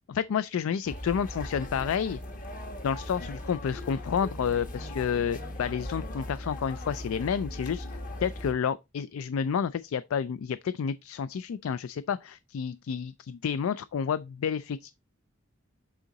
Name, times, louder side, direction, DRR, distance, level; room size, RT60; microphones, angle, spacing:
voice 1, 0.1-2.2 2.8-14.9, left 7 dB, 85° left, 0.3 m, -30 dB
sound 1, 0.9-8.5, left 1 dB, 40° left, 1.2 m, -39 dB
8.0 x 3.7 x 3.9 m
head